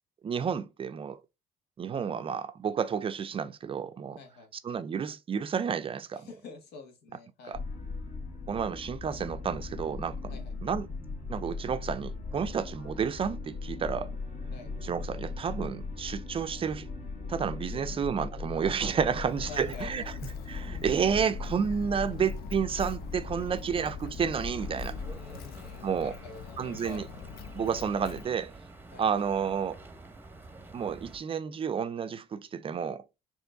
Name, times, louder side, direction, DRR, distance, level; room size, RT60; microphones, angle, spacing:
voice 1, 0.2-1.2 1.8-4.2 4.6-6.3 7.5-7.6 8.5-10.4 10.6-10.9 11.3-14.1 14.8-16.9 17.3-20.0 20.5-25.0 25.8-26.2 26.6-27.1 27.5-28.5 29.0-29.8 30.7-33.2, right 7 dB, 30° right, 0.4 m, -31 dB
voice 2, 4.2-4.5 6.1-7.6 10.3-10.5 14.5-14.7 17.6-18.0 19.0-20.2 25.1-27.1 28.9-29.2, left 4 dB, 85° left, 1.3 m, -47 dB
sound 1, 7.5-25.1, left 3 dB, 45° left, 2.0 m, -39 dB
Walk footsteps, 19.3-28.2, left 9 dB, 65° left, 0.5 m, -45 dB
sound 2, 24.6-31.2, right 2 dB, 10° right, 0.8 m, -49 dB
4.5 x 2.9 x 3.7 m
cardioid pair, 110°, 17 cm